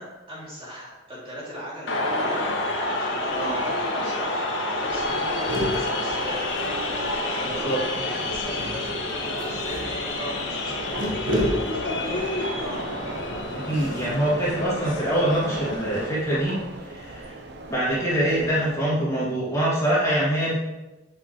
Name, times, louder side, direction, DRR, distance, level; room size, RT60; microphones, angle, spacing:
voice 1, 0.0-12.8, equal, 30° right, -7 dB, 2.9 m, -38 dB
discontent people, 1.9-16.1, left 2 dB, 85° left, 1.7 m, -29 dB
voice 2, 3.3-3.7 7.4-7.8 13.6-16.6 16.8-17.3 17.7-20.6, right 1 dB, 15° left, -8 dB, 2.5 m, -24 dB
sound 1, 3.5-3.7 4.1-4.2 4.4-4.7 5.0-7.3 8.4-15.4, equal, 90° right, 1.4 m, -33 dB
sound 2, 4.9-18.8, right 2 dB, 60° right, 0.8 m, -38 dB
8.7 x 7.3 x 3.2 m, 1.1 s
head